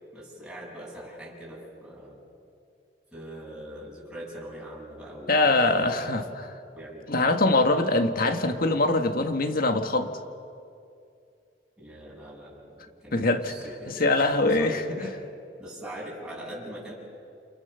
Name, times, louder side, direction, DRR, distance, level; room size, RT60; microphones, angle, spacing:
voice 1, 0.1-2.2 3.1-6.3 6.7-7.3 7.7-7.9 11.8-15.2 15.6-16.9, equal, 5° right, -6 dB, 8.0 m, -42 dB
voice 2, 5.3-6.2 7.1-10.1 13.1-13.5 14.0-15.1, left 2 dB, 55° left, 7 dB, 1.7 m, -23 dB
30.0 x 28.5 x 7.0 m, 2.5 s
head